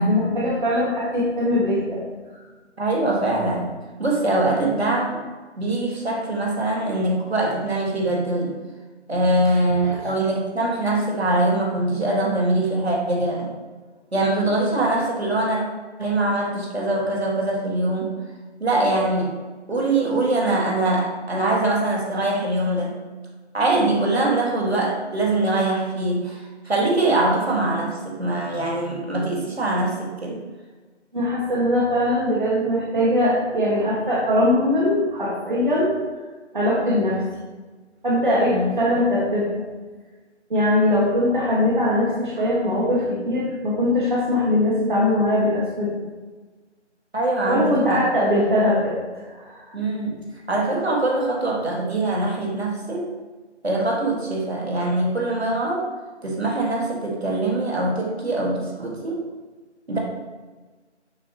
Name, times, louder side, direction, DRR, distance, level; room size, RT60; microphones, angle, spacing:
voice 1, 0.0-2.0 31.1-36.0 36.5-37.2 38.0-39.6 40.5-45.9 47.5-49.0 49.3-49.7, left 1 dB, 45° right, -6 dB, 1.6 m, -21 dB
voice 2, 2.8-3.7 4.0-5.2 5.6-8.5 9.1-13.5 14.1-15.6 16.0-18.1 18.6-19.3 19.7-22.9 23.5-30.4 38.4-38.7 47.1-48.0 49.7-50.1 50.5-53.1 53.6-55.9 56.2-59.2 59.9-60.0, right 2 dB, 60° right, -2 dB, 1.8 m, -23 dB
6.7 x 5.9 x 2.9 m, 1.3 s
figure-of-eight pair, 170°, 36 cm